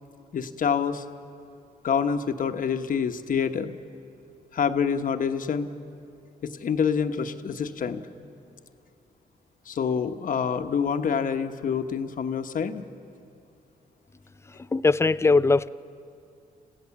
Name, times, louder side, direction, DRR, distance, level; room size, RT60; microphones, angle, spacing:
voice 1, 0.3-1.0 1.8-3.8 4.5-5.7 6.4-8.0 9.7-12.8, left 6 dB, 60° left, 1.1 m, -27 dB
voice 2, 14.7-15.7, left 3 dB, 15° left, 0.4 m, -20 dB
28.0 x 16.0 x 7.1 m
cardioid pair, 80°, 16 cm